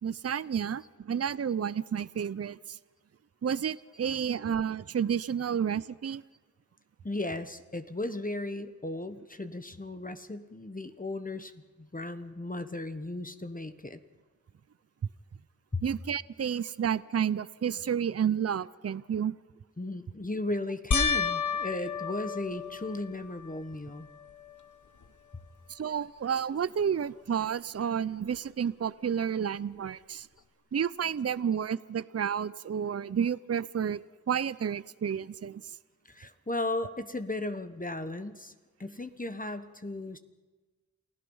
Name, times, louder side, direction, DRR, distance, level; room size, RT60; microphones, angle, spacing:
voice 1, 0.0-2.8 3.4-6.2 15.8-19.4 25.7-30.3 30.7-34.0 34.3-35.8, right 8 dB, 55° right, 18 dB, 0.5 m, -31 dB
voice 2, 7.0-11.5 11.8-14.0 15.7-15.8 19.8-24.1 36.1-38.5 38.8-40.2, left 2 dB, 30° left, 9 dB, 1.3 m, -36 dB
sound 1, 20.9-23.5 24.1-24.7 25.0-25.1 28.3-28.4, left 5 dB, 75° left, 1.1 m, -31 dB
28.0 x 16.5 x 5.5 m, 1.2 s
wide cardioid pair, 50°, 30 cm